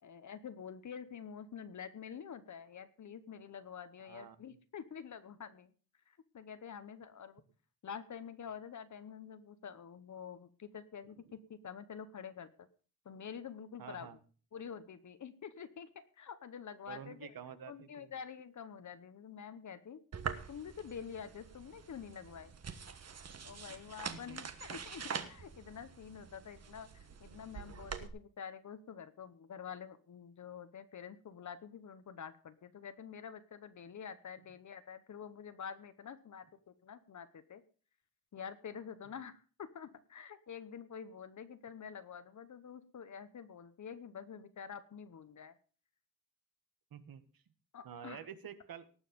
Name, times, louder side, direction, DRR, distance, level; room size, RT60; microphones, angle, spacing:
voice 1, 0.0-5.7 6.1-7.4 7.8-12.7 13.0-14.1 14.5-15.9 16.2-17.3 17.7-20.0 20.5-22.5 23.4-37.6 38.3-45.5 47.7-48.2, left 7 dB, 50° left, 11 dB, 1.0 m, -48 dB
voice 2, 4.0-4.4 13.8-14.2 16.9-18.1 23.5-23.7 24.1-24.4 46.9-47.2 47.8-48.9, right 8 dB, 70° right, 12 dB, 1.4 m, -49 dB
sound 1, 20.1-28.1, right 6 dB, 45° right, 1.3 m, -45 dB
18.5 x 7.3 x 5.2 m, 0.39 s
wide cardioid pair, 165°, 36 cm